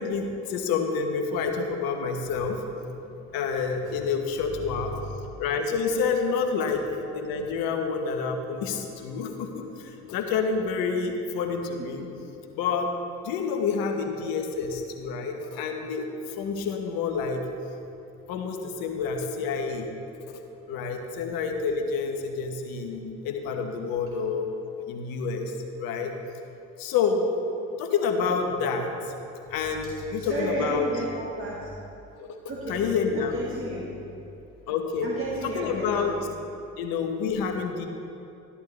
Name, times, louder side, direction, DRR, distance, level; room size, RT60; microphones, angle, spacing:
voice 1, 0.0-2.6 3.3-5.0 5.4-6.8 7.1-12.1 12.5-12.9 13.2-17.5 18.3-19.9 20.3-20.4 20.7-24.5 24.9-26.1 26.8-27.2 27.8-28.9 29.5-31.0 32.2-32.4 32.7-33.4 34.7-35.1 35.4-36.1 36.8-37.9, left 5 dB, 70° left, 4 dB, 1.2 m, -28 dB
voice 2, 30.2-31.7 32.5-32.8 33.2-33.9 35.0-36.2, right 1 dB, 35° right, -6 dB, 2.2 m, -32 dB
12.5 x 11.5 x 3.2 m, 2.8 s
hypercardioid pair, 50°, 37 cm